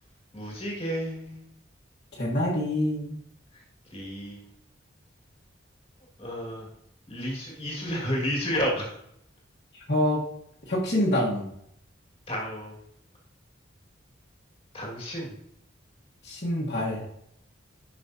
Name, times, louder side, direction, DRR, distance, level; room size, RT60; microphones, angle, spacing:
voice 1, 0.3-1.4 3.9-4.4 6.2-6.7 7.1-8.9 12.3-12.8 14.7-15.4, equal, 30° left, -2 dB, 2.0 m, -31 dB
voice 2, 2.1-3.2 9.7-10.2 10.7-11.4 16.2-17.0, left 1 dB, 55° left, -6 dB, 1.4 m, -26 dB
10.5 x 5.6 x 2.7 m, 0.74 s
head